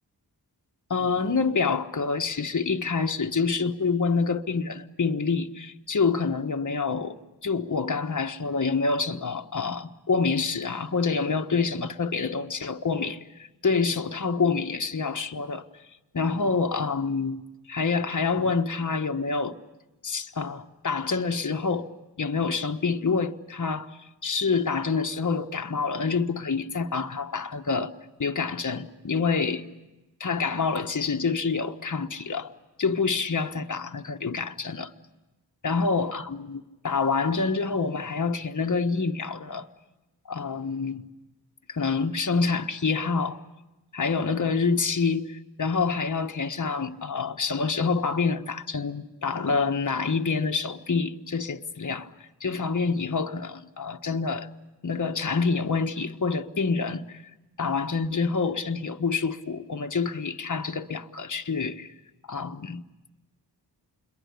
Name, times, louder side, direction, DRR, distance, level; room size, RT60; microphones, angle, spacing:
voice 1, 0.9-15.6 16.1-17.4 17.7-19.6 20.0-21.9 22.2-27.9 28.2-29.7 30.2-32.5 32.8-34.9 35.6-39.7 40.2-41.0 41.7-43.4 43.9-54.5 54.8-57.2 57.6-61.9 62.3-62.8, left 4 dB, 45° left, 1.3 m, -27 dB
27.5 x 22.5 x 8.3 m
cardioid pair, 45°, 42 cm